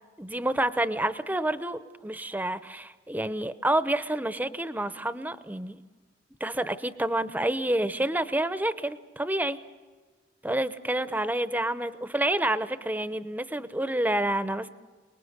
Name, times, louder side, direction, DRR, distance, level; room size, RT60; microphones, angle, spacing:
voice 1, 0.2-5.8 6.4-9.6 10.4-14.7, right 1 dB, 10° right, 12 dB, 0.8 m, -28 dB
29.0 x 20.5 x 6.6 m, 1.4 s
head